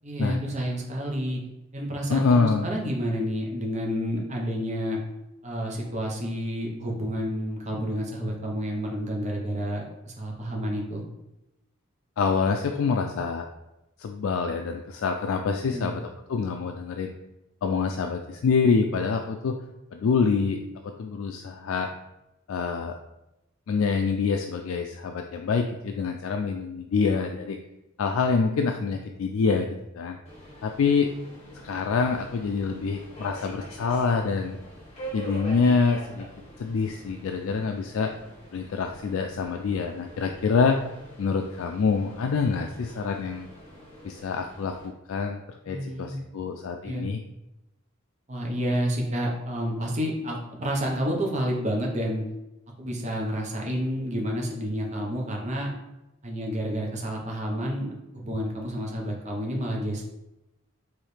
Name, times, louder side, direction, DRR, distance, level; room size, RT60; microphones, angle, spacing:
voice 1, 0.0-1.4 1.7-5.0 5.4-11.0 15.6-16.0 45.6-46.2 46.8-47.1 48.3-52.2 52.8-55.7 56.2-60.1, equal, 35° right, -1 dB, 0.8 m, -30 dB
voice 2, 2.1-2.7 12.2-13.5 14.0-17.1 17.6-19.6 19.9-21.9 22.5-23.0 23.7-27.6 28.0-29.7 29.9-30.2 30.6-31.1 31.6-34.6 35.1-36.3 36.6-38.1 38.5-40.8 41.2-43.5 44.0-47.2, left 5 dB, 70° left, 4 dB, 0.3 m, -26 dB
Subway metro underground, 30.2-44.9, right 1 dB, 30° left, 1.4 m, -44 dB
4.8 x 3.1 x 3.2 m, 0.93 s
head